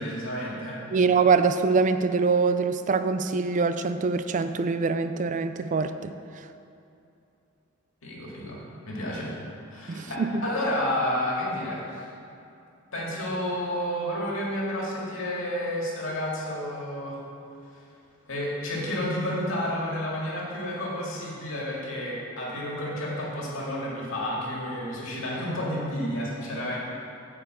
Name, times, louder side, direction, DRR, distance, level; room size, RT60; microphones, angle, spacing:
voice 1, 0.0-0.8 8.0-9.4 9.7-11.8 12.9-17.2 18.3-26.8, left 1 dB, 70° left, -4 dB, 2.2 m, -31 dB
voice 2, 0.9-6.1 9.9-10.4, right 4 dB, 40° right, 10 dB, 0.3 m, -24 dB
8.3 x 4.9 x 7.4 m, 2.7 s
head